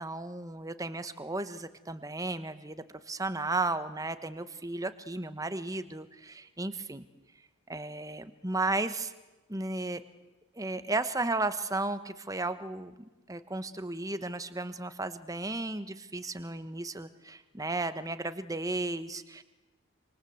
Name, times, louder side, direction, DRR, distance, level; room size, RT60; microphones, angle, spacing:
voice 1, 0.0-7.0 7.7-9.1 9.5-10.0 10.6-12.9 13.3-19.4, right 2 dB, 15° right, 11 dB, 1.1 m, -34 dB
27.5 x 26.5 x 8.0 m, 1.1 s
head